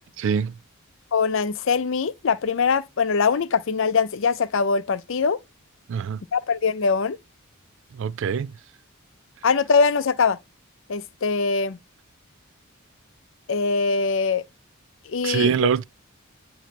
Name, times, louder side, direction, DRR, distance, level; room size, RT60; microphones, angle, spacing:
voice 1, 0.2-0.5 5.9-6.2 8.0-8.5 15.2-15.8, right 7 dB, 65° right, 0.3 m, -23 dB
voice 2, 1.1-5.4 6.3-7.2 9.4-10.4 10.9-11.8 13.5-14.4 15.1-15.8, left 5 dB, 60° left, 0.5 m, -22 dB
9.1 x 3.1 x 4.1 m
head